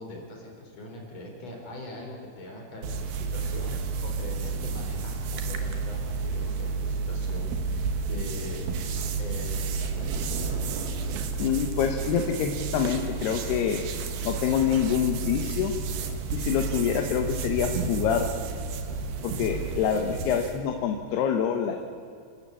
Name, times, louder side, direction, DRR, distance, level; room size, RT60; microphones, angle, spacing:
voice 1, 0.0-3.7 4.0-8.6 9.2-10.2, left 1 dB, 40° left, 1 dB, 4.9 m, -42 dB
sound 1, 2.8-20.6, right 4 dB, 70° right, 3.2 m, -31 dB
voice 2, 11.4-13.8 14.2-15.7 16.3-18.3 19.2-21.8, left 8 dB, 80° left, 4 dB, 3.2 m, -26 dB
29.5 x 13.0 x 8.7 m, 2.4 s
omnidirectional pair, 4.7 m